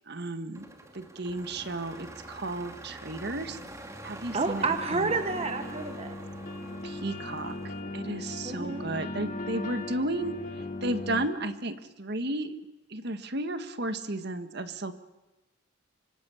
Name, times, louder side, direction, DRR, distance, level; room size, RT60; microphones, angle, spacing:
voice 1, 0.1-0.7 0.9-3.6 4.0-4.7 4.9-5.1 6.8-7.6 7.9-10.4 10.8-12.6 12.9-14.9, right 2 dB, 55° right, 10 dB, 1.6 m, -33 dB
sound 1, 0.5-7.8, right 1 dB, 15° right, 2.4 m, -46 dB
voice 2, 4.3-6.2 8.4-8.9, right 3 dB, 30° right, 8 dB, 1.1 m, -30 dB
sound 2, 4.6-11.3, left 2 dB, 40° left, 2.7 m, -38 dB
25.5 x 24.5 x 7.2 m, 1.0 s
head